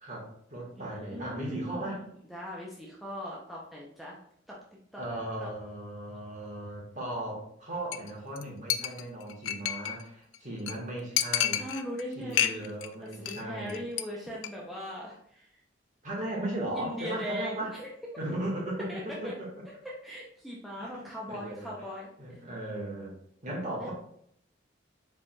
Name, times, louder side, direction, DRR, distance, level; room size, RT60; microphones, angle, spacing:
voice 1, 0.0-2.0 5.0-11.6 12.1-13.8 16.0-17.7 18.2-19.5 20.8-21.7 22.2-23.1 23.4-23.9, right 1 dB, 40° right, -3 dB, 1.5 m, -37 dB
voice 2, 0.8-4.2 4.5-4.6 4.9-5.0 5.4-5.5 11.6-12.7 13.0-15.6 16.7-17.9 18.9-19.3 20.0-22.5 23.8-23.9, equal, ahead, -5 dB, 0.6 m, -40 dB
Chink clink, 7.9-8.1 8.4-8.5 8.7-10.0 10.3-10.4 10.7-10.8 11.2-12.0 12.3-12.9 13.1-13.4 13.7-14.0 14.3-14.5, left 11 dB, 90° left, 0.4 m, -29 dB
4.7 x 4.6 x 2.3 m, 0.69 s
head